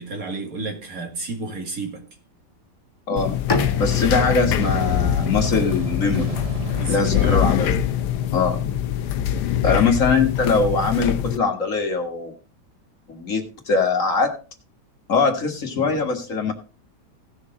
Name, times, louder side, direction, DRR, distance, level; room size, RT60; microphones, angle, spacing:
voice 1, 0.0-2.0 6.8-7.8 9.6-9.9, right 3 dB, 55° right, 2.5 m, -32 dB
sound 1, 3.2-11.4, left 11 dB, 80° left, 1.3 m, -23 dB
Bowed string instrument, 3.5-7.4, left 3 dB, 30° left, 0.4 m, -31 dB
voice 2, 3.8-6.3 6.9-7.7 8.3-8.8 9.6-12.3 13.1-14.3 15.1-16.5, left 4 dB, 50° left, 2.0 m, -22 dB
sound 2, 4.6-8.5, right 4 dB, 25° right, 0.8 m, -32 dB
17.0 x 6.5 x 3.9 m
omnidirectional pair, 1.8 m